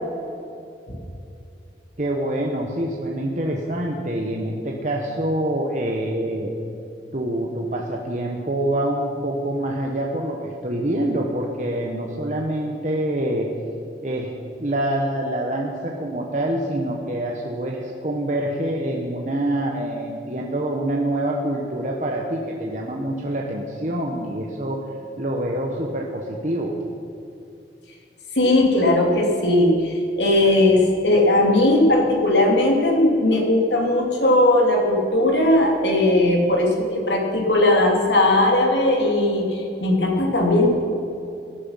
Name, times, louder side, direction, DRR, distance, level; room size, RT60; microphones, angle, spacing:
voice 1, 2.0-6.5 7.1-13.5 14.0-14.3 14.6-24.8 25.2-26.8, right 1 dB, 40° right, 0 dB, 1.3 m, -26 dB
voice 2, 28.3-40.7, left 1 dB, 80° left, 1 dB, 3.0 m, -18 dB
18.0 x 12.0 x 5.8 m, 2.7 s
head